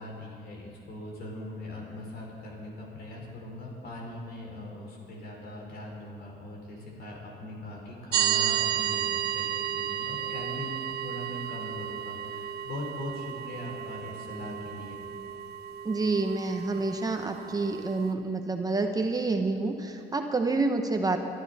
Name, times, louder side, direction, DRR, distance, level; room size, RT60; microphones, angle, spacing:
voice 1, 0.0-15.0, left 1 dB, 65° left, -1 dB, 4.3 m, -40 dB
sound 1, 8.1-18.1, right 10 dB, 70° right, 0.9 m, -33 dB
voice 2, 15.8-21.2, right 3 dB, 20° right, 4 dB, 0.9 m, -28 dB
22.5 x 12.5 x 4.2 m, 2.6 s
cardioid pair, 135°, 18 cm